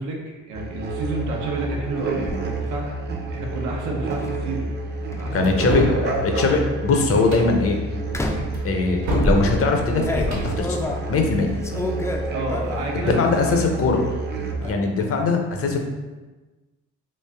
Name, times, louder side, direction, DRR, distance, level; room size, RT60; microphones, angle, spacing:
voice 1, 0.0-2.9 3.3-4.7 5.1-6.0 12.3-13.6 14.6-14.9, right 3 dB, 90° right, 0 dB, 0.8 m, -30 dB
sound 1, 0.5-14.6, right 2 dB, 35° right, 0.6 m, -29 dB
sound 2, 1.8-2.4 4.1-4.4 5.1-6.0 6.7-7.0 8.1-8.6 9.2-13.0 13.3-13.9 14.1-14.7, left 1 dB, 10° left, 0.3 m, -29 dB
voice 2, 5.3-7.8 8.6-11.6 12.9-14.0 14.6-15.8, left 3 dB, 50° left, 3 dB, 0.6 m, -21 dB
sound 3, 5.4-6.0 7.2-7.5 8.5-9.4 10.1-10.5, right 1 dB, 65° right, 1.0 m, -26 dB
3.2 x 2.5 x 3.4 m, 1.2 s
cardioid pair, 90°, 30 cm